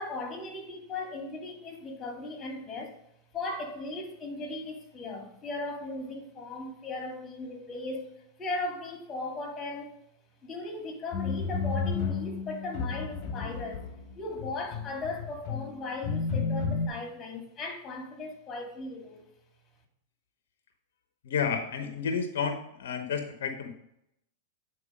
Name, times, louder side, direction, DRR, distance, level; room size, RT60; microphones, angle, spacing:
voice 1, 0.0-3.0 3.3-8.1 8.4-10.0 10.4-13.9 14.1-19.3, left 2 dB, 25° left, 2.5 m, -37 dB
sound 1, 11.1-16.9, left 5 dB, 45° left, 1.3 m, -32 dB
voice 2, 21.2-23.7, left 6 dB, 75° left, 0.8 m, -31 dB
8.5 x 4.5 x 5.1 m
hypercardioid pair, 105°, 0 cm